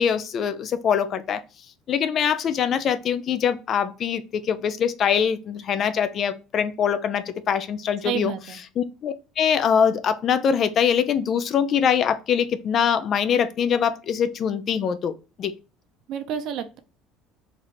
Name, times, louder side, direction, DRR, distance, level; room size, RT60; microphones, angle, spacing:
voice 1, 0.0-1.4 1.9-8.3 8.8-15.1 15.4-15.5, left 7 dB, 45° left, 0.4 m, -23 dB
voice 2, 8.0-8.6 16.1-16.8, right 8 dB, 65° right, 0.7 m, -29 dB
3.3 x 2.5 x 4.1 m
cardioid pair, 110°, 0 cm